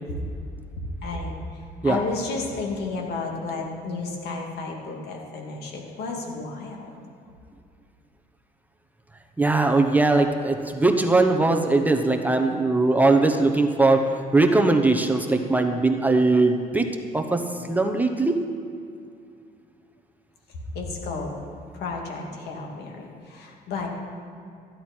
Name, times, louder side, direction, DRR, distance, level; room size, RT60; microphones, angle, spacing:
voice 1, 1.0-6.9 20.7-21.3 21.7-23.9, left 3 dB, 75° left, 0 dB, 2.4 m, -32 dB
voice 2, 9.4-16.8 17.1-17.4 17.7-18.4, right 3 dB, 10° right, 3 dB, 0.8 m, -20 dB
14.0 x 10.5 x 4.5 m, 2.4 s
cardioid pair, 110°, 17 cm